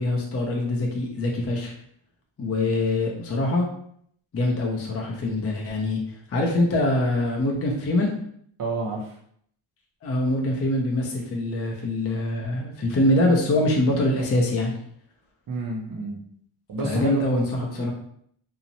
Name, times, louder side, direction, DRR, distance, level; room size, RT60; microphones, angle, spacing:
voice 1, 0.0-1.7 2.4-3.7 4.3-6.0 6.3-8.1 10.0-14.7 16.8-17.4 17.7-17.9, left 1 dB, 30° left, 0 dB, 0.5 m, -24 dB
voice 2, 8.6-9.2 15.5-16.2 16.7-17.2 17.6-17.9, right 3 dB, 45° right, -2 dB, 0.5 m, -30 dB
2.8 x 2.0 x 2.6 m, 0.65 s
wide cardioid pair, 105°, 50 cm